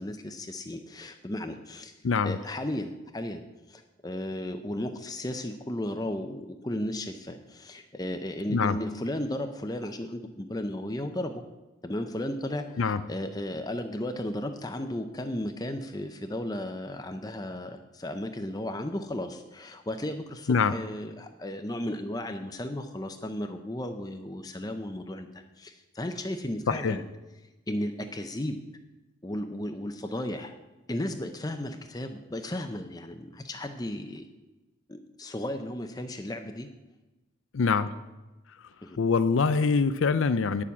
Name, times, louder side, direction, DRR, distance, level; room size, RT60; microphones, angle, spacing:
voice 1, 0.0-1.9 2.2-11.4 11.8-27.0 27.7-28.6 29.2-30.5 30.9-34.3 34.9-36.7 38.8-39.0, left 1 dB, 20° left, 6 dB, 0.6 m, -34 dB
voice 2, 2.0-2.4 8.5-8.8 12.8-13.0 20.5-20.7 26.7-27.0 37.5-37.9 39.0-40.6, left 5 dB, 75° left, 12 dB, 0.5 m, -24 dB
9.9 x 7.0 x 7.2 m, 1.1 s
head